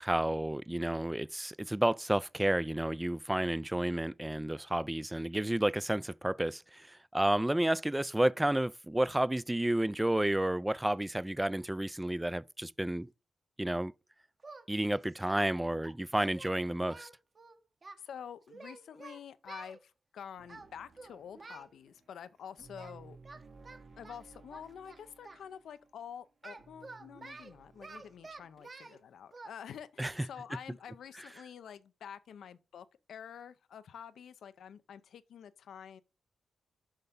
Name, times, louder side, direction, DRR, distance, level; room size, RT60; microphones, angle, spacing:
voice 1, 0.0-13.1 13.6-13.9 14.7-17.1 30.0-30.1, right 1 dB, 10° right, 0.3 m, -31 dB
Singing, 14.4-15.5 15.8-18.0 18.5-19.8 20.5-20.7 21.0-21.7 22.8-23.0 23.2-25.4 26.4-29.0 29.3-29.5, right 3 dB, 40° right, 1.1 m, -50 dB
voice 2, 18.0-23.2 24.0-36.0, left 8 dB, 85° left, 0.6 m, -48 dB
sound 1, 20.4-28.6, right 4 dB, 60° right, 1.5 m, -58 dB
8.0 x 5.6 x 3.6 m
cardioid pair, 75°, 0 cm